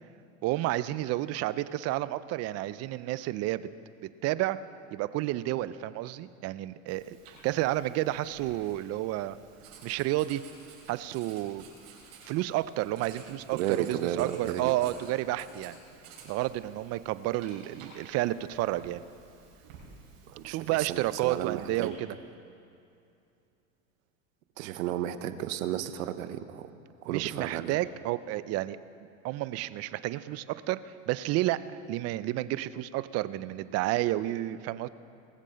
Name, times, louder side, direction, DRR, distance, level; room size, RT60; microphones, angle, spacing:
voice 1, 0.4-3.7 4.2-4.6 4.9-7.2 7.4-9.4 9.8-10.4 10.9-11.6 12.2-15.8 16.2-19.0 20.4-22.1 27.1-28.8 29.2-31.6 31.9-34.9, right 16 dB, 40° right, 15 dB, 0.5 m, -31 dB
Writing, 6.9-21.9, right 5 dB, 60° right, 4.3 m, -53 dB
voice 2, 13.5-14.7 20.3-22.0 24.6-26.7 27.0-27.7, right 11 dB, 75° right, 11 dB, 0.9 m, -33 dB
19.5 x 7.5 x 6.3 m, 2.6 s
supercardioid pair, 115°, 40 cm